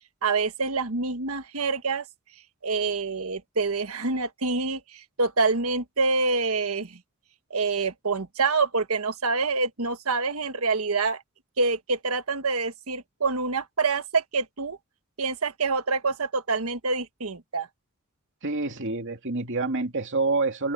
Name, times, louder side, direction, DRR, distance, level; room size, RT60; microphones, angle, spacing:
voice 1, 0.2-2.1 2.6-7.0 7.5-11.2 11.6-14.8 15.2-17.7, right 4 dB, 85° right, 1.5 m, -26 dB
voice 2, 18.4-20.7, right 3 dB, 60° right, 2.6 m, -27 dB
head